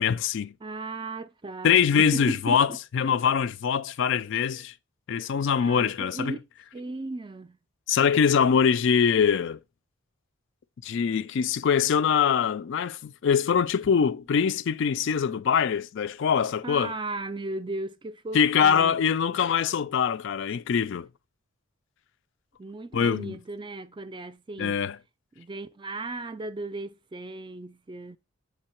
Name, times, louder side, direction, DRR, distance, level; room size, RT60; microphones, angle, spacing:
voice 1, 0.0-0.5 1.6-4.7 5.1-6.3 7.9-9.6 10.8-16.9 18.3-21.1 22.9-23.4 24.6-25.0, left 7 dB, 55° left, 0.3 m, -23 dB
voice 2, 0.6-2.8 5.6-6.4 6.7-7.6 16.6-19.1 22.6-24.8 25.4-28.2, right 2 dB, 20° right, 0.4 m, -36 dB
7.1 x 3.8 x 4.3 m
head